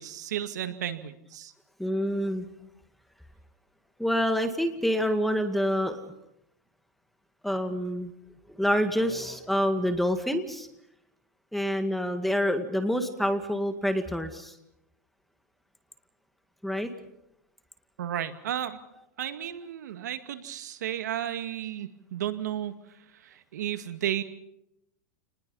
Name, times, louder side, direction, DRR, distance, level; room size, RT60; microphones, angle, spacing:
voice 1, 0.0-1.5 18.0-18.8 19.2-22.7 23.1-24.2, right 11 dB, 85° right, 9 dB, 2.1 m, -33 dB
voice 2, 1.8-2.5 4.0-6.1 7.4-8.1 8.6-10.7 11.5-14.5 16.6-16.9, equal, ahead, 7 dB, 2.0 m, -27 dB
29.5 x 20.0 x 5.6 m, 0.83 s
supercardioid pair, 145°, 9 cm